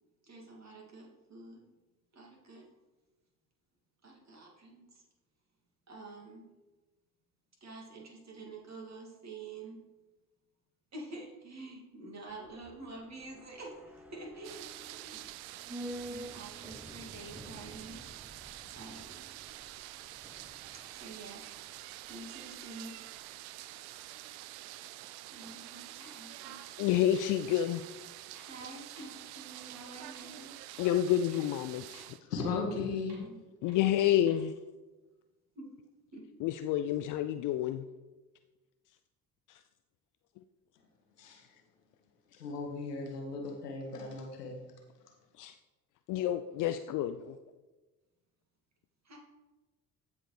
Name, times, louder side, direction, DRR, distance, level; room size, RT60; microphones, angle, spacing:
voice 1, 0.2-1.6 2.1-2.6 4.0-5.0 5.9-6.5 7.6-9.8 10.9-15.2 15.8-18.1 18.7-19.3 20.7-22.9 25.3-26.6 28.4-30.5 33.0-33.4 35.5-35.7 36.1-36.2 49.0-49.2, right 2 dB, 35° right, -1 dB, 2.5 m, -48 dB
sound 1, 12.3-22.7 23.0-23.1, right 1 dB, 5° right, 0.6 m, -49 dB
sound 2, 14.4-32.2, right 15 dB, 55° right, 0.5 m, -47 dB
sound 3, 26.0-26.1 26.6-26.7 27.2-27.3 27.7-27.8 28.3-28.4 29.0-29.1 29.5-29.6 30.1-30.2 30.7-30.8 31.3-31.4 31.9-32.0 32.5-32.6 33.1-33.2 33.7-33.8 34.3-34.4, right 2 dB, 80° right, 2.5 m, -56 dB
voice 2, 26.8-27.8 30.8-32.0 33.6-34.5 36.4-37.9 39.5-39.6 45.4-45.5 46.1-47.4, left 11 dB, 45° left, 9 dB, 0.4 m, -29 dB
voice 3, 32.2-33.2 41.2-41.4 42.3-44.6, left 4 dB, 85° left, 1 dB, 1.4 m, -36 dB
15.0 x 4.9 x 3.4 m, 1.2 s
figure-of-eight pair, 55°, 46 cm